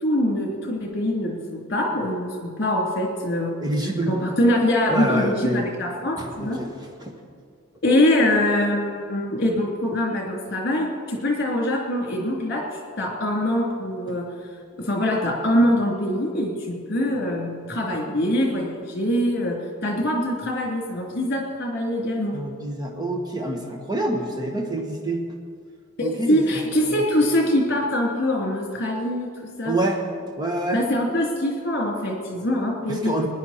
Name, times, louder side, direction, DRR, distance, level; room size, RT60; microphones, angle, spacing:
voice 1, 0.0-3.5 4.1-6.6 7.8-12.6 13.0-14.3 14.8-22.3 26.0-29.8 30.7-33.3, left 1 dB, 45° left, -1 dB, 3.0 m, -23 dB
voice 2, 3.6-4.2 4.9-5.7 6.2-6.7 7.0-7.1 22.3-25.3 26.0-26.4 26.9-27.1 29.6-30.0 30.4-30.8 33.0-33.3, right 1 dB, 20° right, 1 dB, 1.4 m, -26 dB
19.0 x 10.5 x 4.3 m, 2.1 s
head